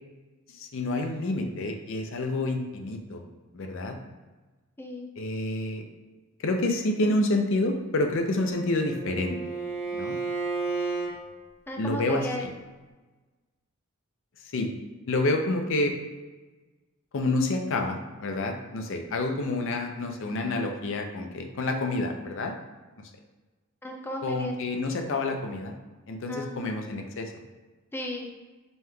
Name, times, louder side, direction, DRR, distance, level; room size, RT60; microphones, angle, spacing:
voice 1, 0.5-3.2 3.5-4.0 5.2-5.8 6.4-9.4 9.9-10.2 11.8-12.5 14.5-14.7 15.1-15.9 17.1-22.5 24.2-25.7 26.1-27.3, left 2 dB, 65° left, 4 dB, 0.5 m, -28 dB
Bowed string instrument, 8.0-11.1, right 4 dB, 35° left, 1.4 m, -33 dB
voice 2, 11.7-12.5 23.8-24.5 26.3-26.7 27.9-28.3, left 1 dB, 10° left, 2 dB, 0.4 m, -35 dB
5.4 x 3.1 x 2.2 m, 1.2 s
head